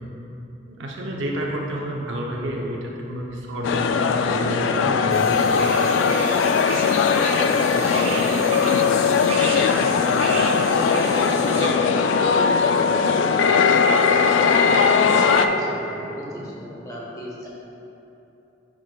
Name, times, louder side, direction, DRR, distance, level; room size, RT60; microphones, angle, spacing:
voice 1, 0.7-5.5, right 1 dB, 85° right, -2 dB, 0.7 m, -29 dB
sound 1, 3.6-15.5, left 5 dB, 85° left, 0.3 m, -19 dB
sound 2, 5.1-11.7, right 2 dB, 30° right, 0.7 m, -32 dB
voice 2, 7.7-9.4 9.7-9.9 10.2-14.4 15.0-17.5, equal, 20° left, -4 dB, 0.9 m, -37 dB
9.5 x 5.0 x 2.2 m, 2.9 s
head